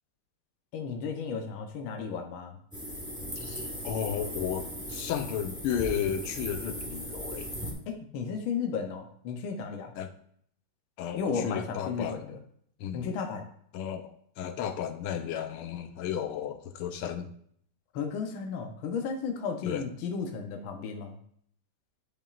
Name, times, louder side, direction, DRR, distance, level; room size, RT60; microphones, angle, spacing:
voice 1, 0.7-2.6 7.9-9.9 11.1-12.4 12.9-13.5 17.9-21.2, left 5 dB, 70° left, 3 dB, 1.6 m, -34 dB
sound 1, 2.7-7.7, equal, 5° right, 1.0 m, -38 dB
voice 2, 3.4-7.5 10.0-10.1 11.0-12.3 12.8-13.1 13.7-14.1 14.4-17.3 19.7-19.8, left 9 dB, 90° left, 8 dB, 1.6 m, -33 dB
10.5 x 5.4 x 2.4 m, 0.65 s
omnidirectional pair, 2.3 m